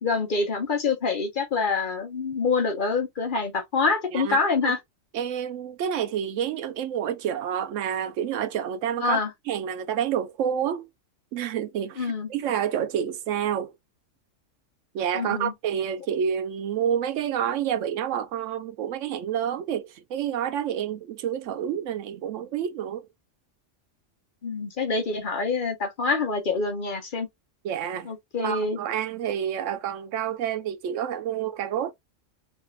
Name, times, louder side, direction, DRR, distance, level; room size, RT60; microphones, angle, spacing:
voice 1, 0.0-4.8 9.0-9.3 12.0-12.3 15.1-15.5 24.4-27.3 28.0-28.8, left 4 dB, 45° left, 0.8 m, -26 dB
voice 2, 4.1-4.7 5.1-9.2 9.5-10.9 11.3-13.7 14.9-23.1 27.6-28.1 28.4-31.9, right 9 dB, 75° right, 0.9 m, -29 dB
3.2 x 2.4 x 3.0 m
omnidirectional pair, 1.3 m